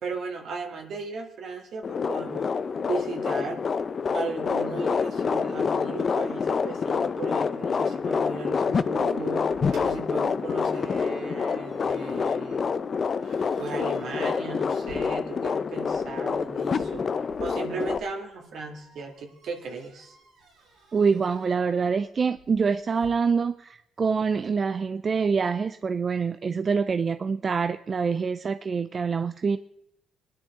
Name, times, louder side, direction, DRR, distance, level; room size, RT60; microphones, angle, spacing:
voice 1, 0.0-3.6 4.1-9.5 9.8-12.6 13.6-20.2, right 4 dB, 70° right, 2 dB, 2.1 m, -36 dB
sound 1, 1.8-18.0, left 5 dB, 45° left, 0.6 m, -27 dB
sound 2, 9.5-23.1, right 1 dB, 90° right, 3.9 m, -53 dB
voice 2, 20.9-29.6, right 5 dB, 40° right, 11 dB, 0.4 m, -25 dB
22.5 x 10.0 x 3.7 m, 0.82 s
cardioid pair, 90°, 0 cm